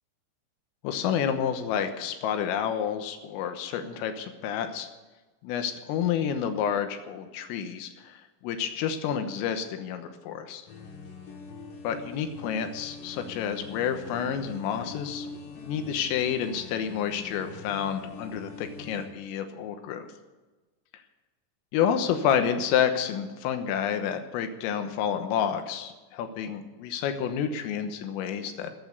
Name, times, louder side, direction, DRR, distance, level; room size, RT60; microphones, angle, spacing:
voice 1, 0.8-4.9 5.4-10.6 11.9-15.3 15.6-20.1 21.7-28.7, left 8 dB, 85° left, 7 dB, 3.8 m, -29 dB
sound 1, 10.7-19.1, left 4 dB, 65° left, 4.1 m, -43 dB
15.0 x 8.8 x 8.4 m, 1.2 s
omnidirectional pair, 5.8 m